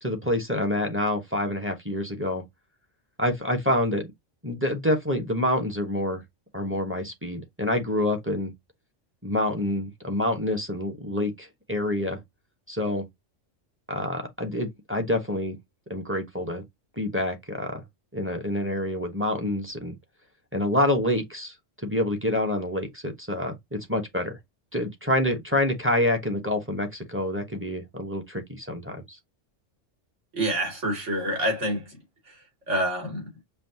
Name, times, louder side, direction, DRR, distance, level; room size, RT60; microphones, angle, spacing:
voice 1, 0.0-2.4 3.2-4.1 4.4-6.2 6.5-8.5 9.2-12.2 12.7-13.0 13.9-15.6 15.9-16.6 17.0-17.8 18.1-20.0 20.5-21.5 21.8-24.4 24.7-29.2, left 1 dB, 10° right, 0.9 m, -27 dB
voice 2, 30.3-31.9 32.7-33.3, right 1 dB, 65° right, 3.0 m, -27 dB
5.6 x 2.6 x 2.8 m
omnidirectional pair, 1.3 m